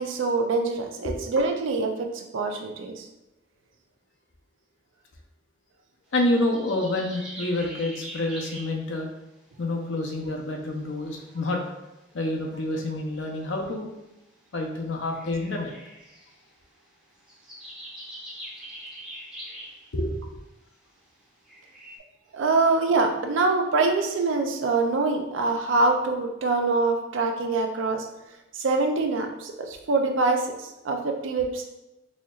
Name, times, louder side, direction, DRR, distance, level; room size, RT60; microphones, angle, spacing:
voice 1, 0.0-3.1 22.3-28.1 28.5-30.5 30.8-31.6, right 3 dB, 90° right, 4 dB, 0.5 m, -24 dB
voice 2, 6.1-9.1 9.6-11.6 12.1-13.9 14.5-15.7 19.9-20.2, left 1 dB, 75° left, 2 dB, 0.6 m, -28 dB
sound 1, 6.4-8.9 10.4-10.5 10.7-11.7 13.7-13.8 15.1-16.6 17.1-19.9 20.9-21.0 21.5-22.0, right 1 dB, 5° right, 0.7 m, -43 dB
4.2 x 2.8 x 2.4 m, 0.95 s
head